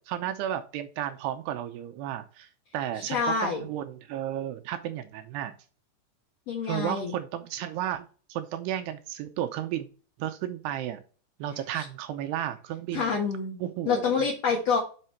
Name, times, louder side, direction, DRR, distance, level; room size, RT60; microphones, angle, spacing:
voice 1, 0.0-5.5 6.6-9.9 10.2-11.0 11.4-13.1 13.6-14.2, right 11 dB, 80° right, 7 dB, 2.6 m, -33 dB
voice 2, 3.0-3.6 6.5-7.1 11.8-11.9 12.9-13.6 13.9-14.8, left 5 dB, 55° left, -3 dB, 2.0 m, -27 dB
6.5 x 6.0 x 4.4 m, 0.38 s
omnidirectional pair, 4.9 m